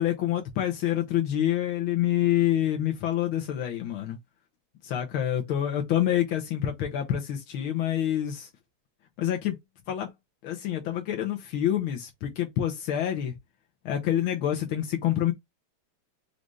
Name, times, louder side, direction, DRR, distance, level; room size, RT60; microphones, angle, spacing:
voice 1, 0.0-4.2 4.8-8.5 9.2-9.6 9.9-10.1 10.4-13.4 13.9-15.3, left 11 dB, 90° left, 1.8 m, -27 dB
5.0 x 2.6 x 3.1 m
omnidirectional pair, 2.2 m